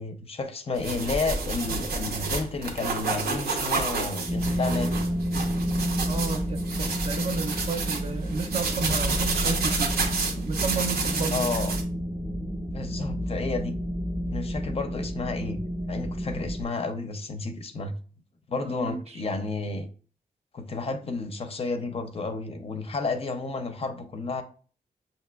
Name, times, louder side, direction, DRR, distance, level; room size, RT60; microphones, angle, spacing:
voice 1, 0.0-5.0 11.3-11.7 12.7-13.7 14.3-15.6 15.9-18.0 18.5-19.9 20.5-24.4, left 3 dB, 40° left, 7 dB, 0.4 m, -31 dB
sound 1, 0.7-11.8, right 3 dB, 90° right, 0.7 m, -30 dB
sound 2, 4.3-16.6, equal, ahead, 0.7 m, -30 dB
voice 2, 6.1-10.0 10.4-11.4 18.6-19.2, right 5 dB, 45° right, 7 dB, 0.4 m, -33 dB
5.7 x 2.7 x 2.2 m, 0.40 s
wide cardioid pair, 175°, 16 cm